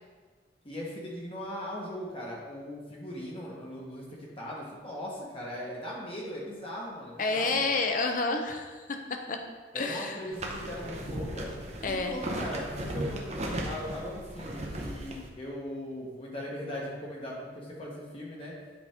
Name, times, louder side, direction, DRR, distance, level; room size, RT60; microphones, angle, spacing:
voice 1, 0.6-7.6 9.7-11.5 11.8-18.5, left 1 dB, 30° left, -4 dB, 1.2 m, -39 dB
voice 2, 7.2-9.0 9.3-9.4 9.7-10.3 11.8-12.2, left 3 dB, 45° left, 4 dB, 0.6 m, -29 dB
sound 1, 10.3-15.3, right 1 dB, 35° right, 0.7 m, -36 dB
8.2 x 4.3 x 3.5 m, 1.4 s
head